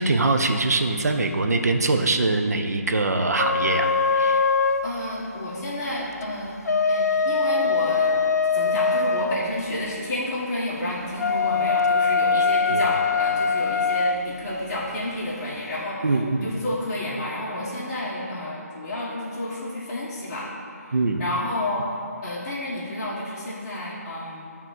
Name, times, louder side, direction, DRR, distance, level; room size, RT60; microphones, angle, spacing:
voice 1, 0.0-3.9 4.2-4.5 12.3-12.4 12.7-12.9 16.0-16.5 20.9-21.2, right 2 dB, 75° right, 5 dB, 0.6 m, -23 dB
sound 1, 3.4-4.9 6.5-9.3 11.2-14.2, left 4 dB, 85° left, 0.4 m, -22 dB
voice 2, 4.8-6.6 6.8-8.2 8.5-20.5 20.8-21.9 22.2-24.4, left 1 dB, 15° left, -9 dB, 1.4 m, -30 dB
9.1 x 3.7 x 6.1 m, 2.5 s
hypercardioid pair, 170°, 9 cm